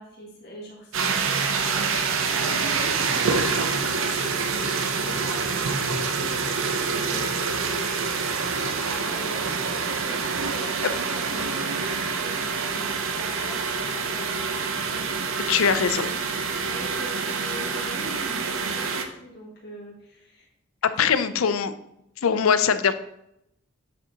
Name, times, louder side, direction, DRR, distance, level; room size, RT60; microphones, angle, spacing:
voice 1, 0.0-8.1 8.8-11.0 11.3-15.5 16.5-20.5 20.9-21.6 22.2-22.4, equal, 50° left, -4 dB, 1.8 m, -43 dB
sound 1, 0.9-19.1, right 5 dB, 70° right, 0.7 m, -26 dB
voice 2, 15.5-16.1 21.0-21.7 22.2-22.9, left 6 dB, 85° left, 13 dB, 0.5 m, -21 dB
7.6 x 6.2 x 2.9 m, 0.80 s
head